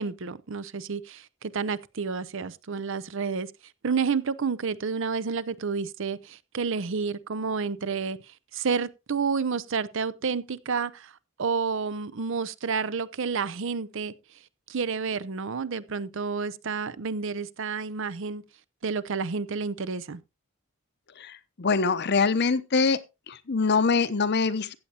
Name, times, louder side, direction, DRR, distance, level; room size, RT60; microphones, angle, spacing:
voice 1, 0.0-3.5 3.8-8.2 8.5-11.1 11.4-14.1 14.7-18.4 18.8-20.2, right 5 dB, 65° right, 0.6 m, -30 dB
voice 2, 21.2-23.0 23.3-24.7, left 4 dB, 55° left, 0.8 m, -24 dB
15.0 x 8.6 x 2.9 m
head